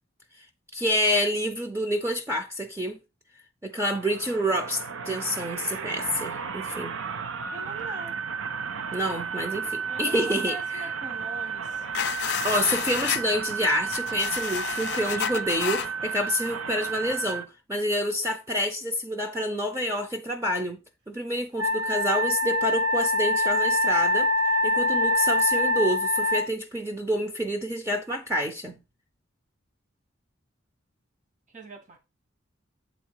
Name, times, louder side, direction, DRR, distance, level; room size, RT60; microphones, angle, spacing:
voice 1, 0.7-3.0 3.6-7.0 8.9-10.9 12.4-20.8 21.1-24.3 24.6-28.8, equal, 15° right, 0.6 m, -28 dB
sound 1, 3.8-17.4, right 6 dB, 90° right, 0.7 m, -33 dB
voice 2, 7.5-8.2 9.8-11.9 31.5-32.0, right 3 dB, 40° right, 1.3 m, -42 dB
sound 2, 11.9-13.2 13.9-15.9, left 9 dB, 60° left, 0.4 m, -30 dB
Wind instrument woodwind instrument, 21.6-26.5, left 1 dB, 60° right, 2.6 m, -24 dB
7.9 x 3.9 x 4.7 m
head